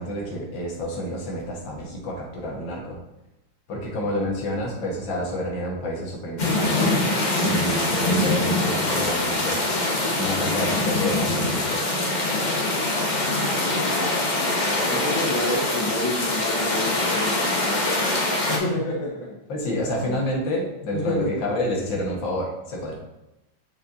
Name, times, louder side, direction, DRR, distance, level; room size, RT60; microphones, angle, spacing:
voice 1, 0.0-3.0 3.7-6.9 7.4-9.6 10.1-11.8 19.5-22.9, left 1 dB, 70° left, -2 dB, 2.1 m, -29 dB
sound 1, 6.4-18.6, left 2 dB, 45° left, 0.6 m, -24 dB
voice 2, 13.1-14.6 14.9-19.3 19.7-20.2 20.9-21.3, left 1 dB, 85° left, -4 dB, 2.2 m, -30 dB
6.7 x 5.5 x 2.7 m, 0.91 s
omnidirectional pair, 2.2 m